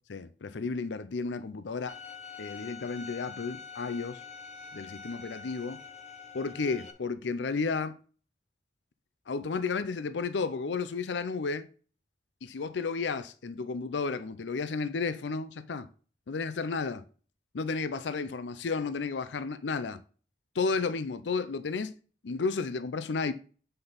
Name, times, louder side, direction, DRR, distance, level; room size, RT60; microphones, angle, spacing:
voice 1, 0.1-2.0 2.4-4.2 4.7-5.8 6.3-8.0 9.3-11.7 12.4-15.9 16.3-17.0 17.5-20.0 20.5-21.9 22.2-23.3, left 4 dB, 90° left, 0.5 m, -32 dB
Bowed string instrument, 1.9-6.9, left 5 dB, 40° left, 1.1 m, -45 dB
7.9 x 5.2 x 4.0 m
head